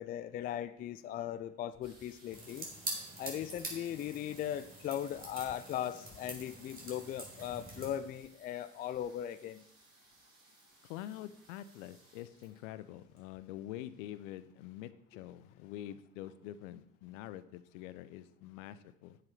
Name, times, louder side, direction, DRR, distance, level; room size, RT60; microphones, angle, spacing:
voice 1, 0.0-2.7 3.2-9.6, left 10 dB, 20° left, 14 dB, 0.4 m, -38 dB
sound 1, 1.8-14.4 15.2-15.3 15.5-15.9 16.2-16.8 17.3-17.4 17.6-17.7, right 2 dB, 65° right, 4.7 m, -63 dB
sound 2, 2.3-8.0, right 2 dB, 20° right, 4.3 m, -45 dB
voice 2, 10.8-19.2, left 13 dB, 60° left, 14 dB, 0.8 m, -46 dB
10.0 x 7.7 x 4.7 m, 0.70 s
figure-of-eight pair, 70°, 45 cm